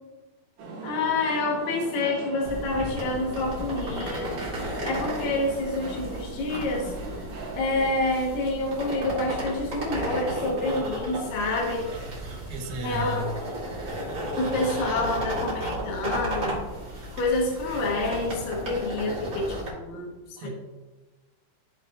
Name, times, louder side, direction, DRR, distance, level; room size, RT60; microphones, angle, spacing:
sound 1, 0.6-19.6, right 2 dB, 55° right, 2.5 m, -43 dB
voice 1, 0.8-4.3 4.6-6.9 7.5-11.9 12.8-13.2 14.4-16.5 17.1-20.5, left 2 dB, 75° left, -2 dB, 2.0 m, -28 dB
sound 2, 2.4-19.7, right 1 dB, 35° right, 1.9 m, -34 dB
voice 2, 12.5-13.3 20.4-20.5, right 3 dB, 80° right, 2 dB, 3.6 m, -33 dB
13.5 x 6.3 x 2.4 m, 1.2 s
omnidirectional pair, 5.7 m